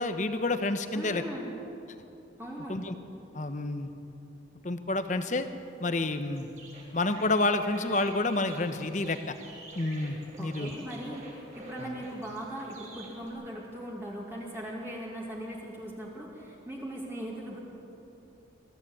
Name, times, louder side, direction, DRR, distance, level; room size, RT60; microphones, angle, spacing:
voice 1, 0.0-1.2 2.7-2.9 3.3-3.9 4.6-5.5 5.8-6.5 6.9-9.2 9.7-10.8 11.8-11.9, left 2 dB, 40° left, 9 dB, 1.0 m, -29 dB
voice 2, 0.9-1.5 2.4-2.8 10.4-17.6, equal, 10° right, -4 dB, 2.3 m, -39 dB
sound 1, 5.6-13.3, right 2 dB, 40° right, 5.5 m, -49 dB
22.0 x 14.0 x 8.6 m, 2.9 s
head